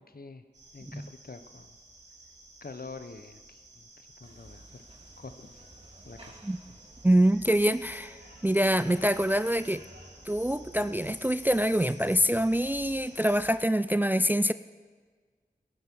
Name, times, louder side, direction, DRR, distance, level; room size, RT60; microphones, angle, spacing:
voice 1, 0.1-0.4 0.7-1.7 2.6-3.9 4.2-4.8 5.2-5.7 6.0-6.4, left 4 dB, 60° left, 0.9 m, -46 dB
sound 1, 0.5-13.5, right 2 dB, 85° right, 2.6 m, -54 dB
sound 2, 4.2-13.6, right 1 dB, 35° right, 2.2 m, -54 dB
voice 2, 7.0-8.2 8.4-9.8 10.3-14.5, equal, 10° right, 0.3 m, -25 dB
18.0 x 10.5 x 5.4 m
wide cardioid pair, 45°, 18 cm